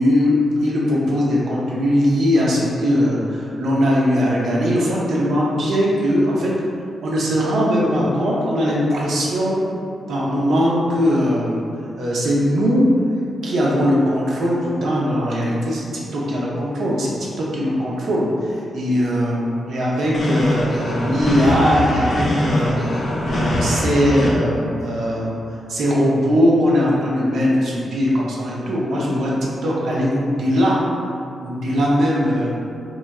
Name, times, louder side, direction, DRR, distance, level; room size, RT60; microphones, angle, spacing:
voice 1, 0.0-6.5 7.0-9.6 10.1-11.6 12.0-12.9 13.4-30.8 31.4-32.5, equal, 75° right, -5 dB, 0.5 m, -20 dB
sound 1, 20.1-24.3, left 1 dB, 55° left, 0.5 m, -22 dB
3.0 x 2.3 x 2.2 m, 2.5 s
cardioid pair, 75°, 0 cm